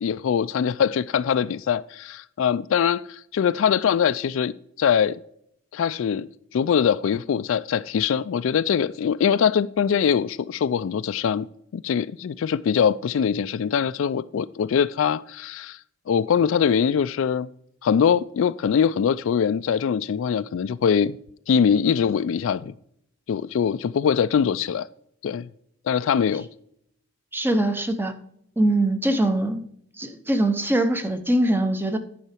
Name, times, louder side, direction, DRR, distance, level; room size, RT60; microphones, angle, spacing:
voice 1, 0.0-5.2 5.7-11.5 11.7-15.8 16.1-17.5 17.8-21.2 21.5-22.7 23.3-24.9 25.2-25.5 25.9-26.5, left 7 dB, 65° left, 0.3 m, -22 dB
voice 2, 27.3-28.1 28.6-29.6 30.0-32.0, right 1 dB, 10° right, 0.7 m, -22 dB
9.8 x 5.8 x 4.4 m
head